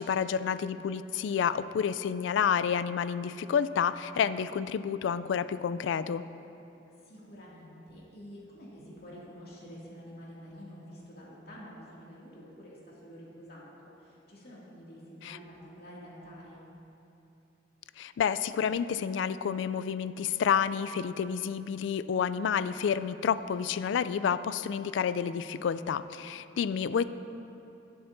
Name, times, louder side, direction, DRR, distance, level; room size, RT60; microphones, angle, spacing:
voice 1, 0.0-6.2 15.2-15.4 18.0-27.0, left 7 dB, 75° left, 15 dB, 0.3 m, -29 dB
voice 2, 6.9-16.6 26.7-27.0, equal, 60° left, -6 dB, 2.3 m, -48 dB
18.5 x 7.8 x 2.6 m, 2.9 s
head